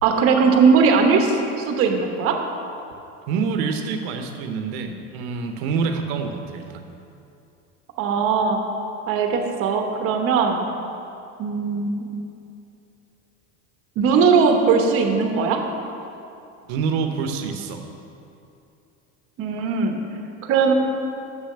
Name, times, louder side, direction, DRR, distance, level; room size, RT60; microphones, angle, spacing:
voice 1, 0.0-2.4 8.0-8.6 9.1-10.6 11.4-12.1 14.0-15.6 19.4-19.9 20.4-20.7, right 5 dB, 45° right, 4 dB, 1.0 m, -19 dB
voice 2, 3.3-6.9 16.7-17.8, right 5 dB, 70° right, 6 dB, 1.0 m, -26 dB
7.1 x 6.8 x 6.6 m, 2.7 s
cardioid pair, 155°, 32 cm